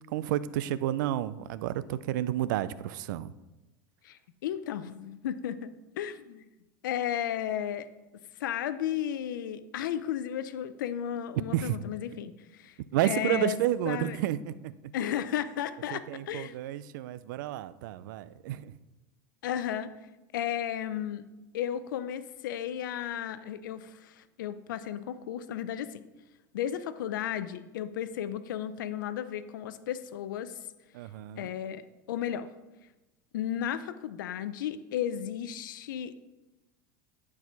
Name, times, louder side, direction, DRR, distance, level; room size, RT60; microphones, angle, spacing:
voice 1, 0.1-3.3 11.5-11.8 12.9-14.9 15.9-18.8 30.9-31.5, right 13 dB, 80° right, 16 dB, 0.5 m, -31 dB
voice 2, 4.0-6.5 6.8-7.9 8.4-12.7 13.0-13.6 13.9-14.2 14.9-16.5 19.4-19.9 20.3-21.2 21.5-26.0 26.5-30.5 31.4-32.5 33.3-36.1, left 10 dB, 85° left, 13 dB, 0.6 m, -34 dB
10.5 x 4.8 x 5.9 m, 1.1 s
hypercardioid pair, 95°, 10 cm